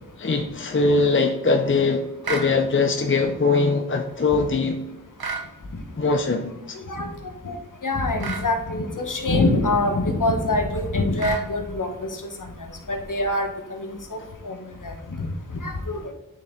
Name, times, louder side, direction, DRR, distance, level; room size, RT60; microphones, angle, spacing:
voice 1, 0.2-4.8 6.0-6.8, left 3 dB, 35° left, 4 dB, 0.7 m, -22 dB
sound 1, 2.2-2.5 5.2-5.5 8.2-8.5 11.2-11.5, right 4 dB, 90° right, 0.9 m, -30 dB
voice 2, 7.8-11.9 12.9-14.2 14.4-14.6 14.8-15.3 15.6-16.0, left 2 dB, 60° left, 5 dB, 1.1 m, -24 dB
8.5 x 3.8 x 3.6 m, 0.96 s
wide cardioid pair, 45°, 36 cm